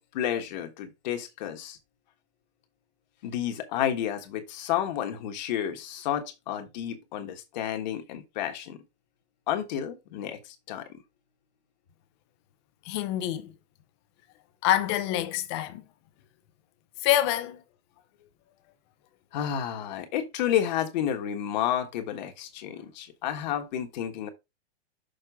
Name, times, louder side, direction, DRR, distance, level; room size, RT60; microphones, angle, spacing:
voice 1, 0.0-1.8 3.2-8.8 9.5-11.0 19.3-24.3, left 10 dB, 40° left, 1.5 m, -31 dB
voice 2, 12.8-13.5 14.6-15.8 17.0-17.6, left 13 dB, 25° left, 0.7 m, -26 dB
6.7 x 5.3 x 3.6 m
hypercardioid pair, 170°, 34 cm